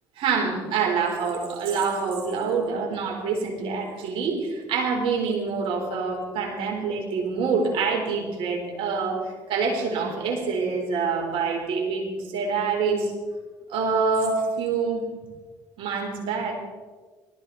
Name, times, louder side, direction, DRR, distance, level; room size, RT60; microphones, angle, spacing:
voice 1, 0.2-9.2 9.5-13.1 13.7-15.0 15.8-16.6, right 5 dB, 70° right, 1 dB, 4.5 m, -26 dB
19.5 x 14.5 x 4.4 m, 1.4 s
hypercardioid pair, 60°, 10 cm